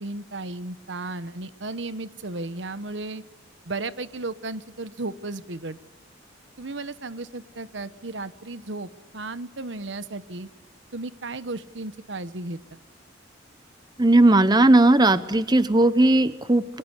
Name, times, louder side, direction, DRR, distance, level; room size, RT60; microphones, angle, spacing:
voice 1, 0.0-3.2 3.7-5.8 6.6-10.5 10.9-12.6, right 2 dB, 65° right, 13 dB, 1.1 m, -34 dB
voice 2, 14.0-16.8, right 2 dB, 20° right, 13 dB, 0.9 m, -17 dB
29.5 x 24.0 x 8.3 m, 1.1 s
head